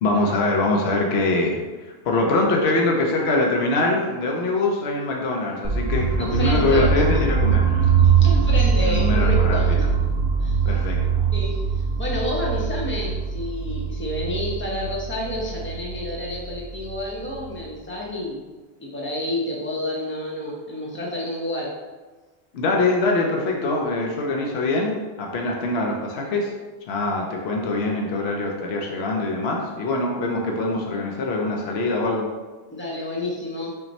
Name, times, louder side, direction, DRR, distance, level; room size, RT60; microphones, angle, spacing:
voice 1, 0.0-1.6 2.0-8.0 8.8-9.9 10.7-11.2 22.5-26.5 26.9-32.3, left 2 dB, 70° left, 0 dB, 0.9 m, -23 dB
sound 1, 5.6-17.6, right 6 dB, 75° right, 0.8 m, -22 dB
voice 2, 6.2-7.1 8.0-9.9 10.4-10.8 11.3-18.4 18.8-21.7 32.7-33.7, left 1 dB, 10° left, -3 dB, 0.7 m, -29 dB
5.7 x 2.2 x 4.1 m, 1.3 s
omnidirectional pair, 1.1 m